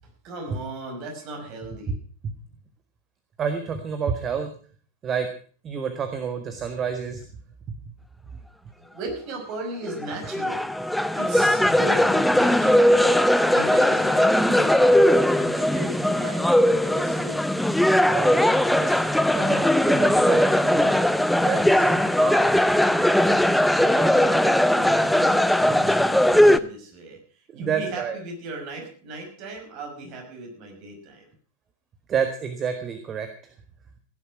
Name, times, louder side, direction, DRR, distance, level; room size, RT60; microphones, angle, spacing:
voice 1, 0.2-2.0 8.8-15.0 15.4-17.4 21.8-21.9 22.9-31.3, right 2 dB, 40° right, 2 dB, 5.7 m, -37 dB
voice 2, 3.4-4.5 5.0-5.3 5.6-7.2 7.7-7.8 18.1-18.9 19.3-21.1 21.4-22.5 23.8-23.9 27.5-28.2 32.1-33.5, right 6 dB, 25° right, 7 dB, 1.6 m, -29 dB
sound 1, 9.9-26.6, left 1 dB, ahead, 0.6 m, -19 dB
16.0 x 10.5 x 6.0 m, 0.43 s
figure-of-eight pair, 90°, 0 cm